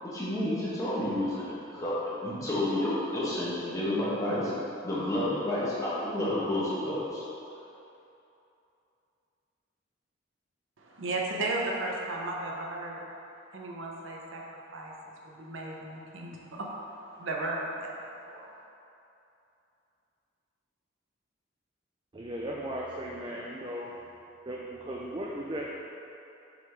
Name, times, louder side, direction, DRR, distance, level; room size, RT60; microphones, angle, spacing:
voice 1, 0.0-4.5 4.8-7.2, left 1 dB, 15° left, -8 dB, 1.2 m, -30 dB
voice 2, 10.8-13.0 13.5-14.4 14.7-17.9 18.3-18.5, right 2 dB, 75° right, -2 dB, 0.8 m, -35 dB
voice 3, 22.1-23.9 24.5-25.7, right 1 dB, 25° right, -3 dB, 0.4 m, -36 dB
5.9 x 3.9 x 4.5 m, 2.8 s
head